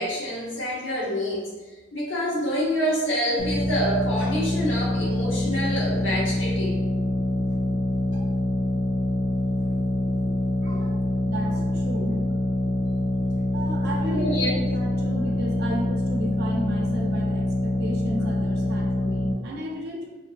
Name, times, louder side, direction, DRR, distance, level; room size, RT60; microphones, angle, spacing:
voice 1, 0.0-1.5 1.9-6.8 14.1-14.5, equal, 80° left, -5 dB, 0.8 m, -27 dB
sound 1, 3.4-19.3, left 1 dB, 55° left, 0.4 m, -25 dB
voice 2, 10.6-12.4 12.9-13.0 13.5-20.1, equal, 55° right, -1 dB, 0.5 m, -34 dB
2.6 x 2.3 x 2.4 m, 1.2 s
head